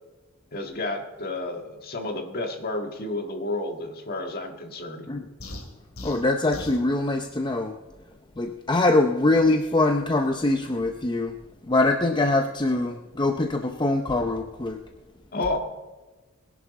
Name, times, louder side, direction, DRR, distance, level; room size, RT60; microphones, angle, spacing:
voice 1, 0.5-5.1 15.3-15.6, left 2 dB, 50° left, 3 dB, 1.7 m, -31 dB
sound 1, 5.4-6.9, left 1 dB, 75° left, 2.6 m, -39 dB
voice 2, 6.0-7.8 8.4-11.3 11.7-14.8, left 2 dB, 20° left, 5 dB, 0.6 m, -23 dB
21.0 x 11.0 x 4.1 m, 1.2 s
head